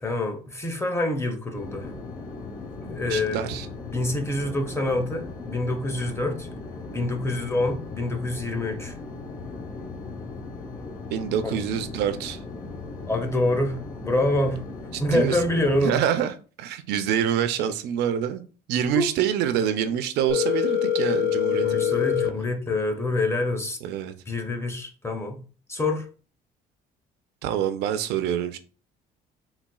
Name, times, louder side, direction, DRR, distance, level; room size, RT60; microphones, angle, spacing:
voice 1, 0.0-1.9 2.9-3.5 3.9-6.5 6.9-9.0 13.1-14.6 15.0-16.0 18.9-19.1 21.4-23.8 24.3-25.4 25.7-26.1, left 2 dB, 15° left, 0.6 m, -26 dB
sound 1, 1.5-15.9, left 3 dB, 50° left, 0.9 m, -38 dB
voice 2, 3.1-3.7 11.1-12.4 15.1-15.4 15.8-16.3 16.6-18.4 18.7-22.0 23.8-24.1 27.4-28.6, right 9 dB, 80° right, 0.4 m, -26 dB
Telephone, 20.3-22.3, left 9 dB, 70° left, 0.5 m, -23 dB
4.0 x 2.3 x 2.2 m
cardioid pair, 110°, 17 cm